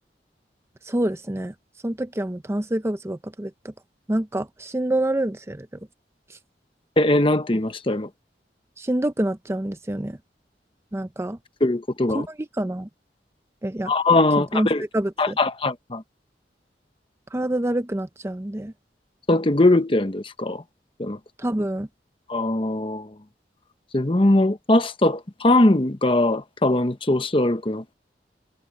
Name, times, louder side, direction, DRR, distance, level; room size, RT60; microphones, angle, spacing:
voice 1, 0.8-1.5 1.8-3.7 4.1-5.7 6.3-6.4 8.8-10.2 10.9-11.4 12.1-12.9 13.6-13.9 14.5-14.7 14.9-15.4 17.3-18.7 21.4-21.9, right 1 dB, 15° right, 0.6 m, -26 dB
voice 2, 7.0-8.1 11.6-12.3 13.9-14.8 15.2-16.0 19.3-20.6 21.0-21.2 22.3-23.1 23.9-27.9, left 2 dB, 30° left, 1.0 m, -21 dB
head